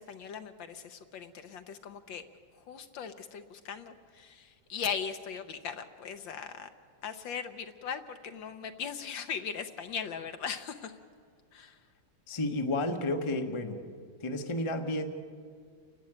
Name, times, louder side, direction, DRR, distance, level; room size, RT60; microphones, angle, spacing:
voice 1, 0.0-2.2 2.5-6.7 7.0-10.9 11.5-11.8, left 7 dB, 65° left, 8 dB, 1.4 m, -39 dB
voice 2, 12.3-13.9 14.2-15.1, left 1 dB, 20° left, 4 dB, 0.7 m, -31 dB
29.0 x 11.5 x 8.8 m, 2.1 s
omnidirectional pair, 2.4 m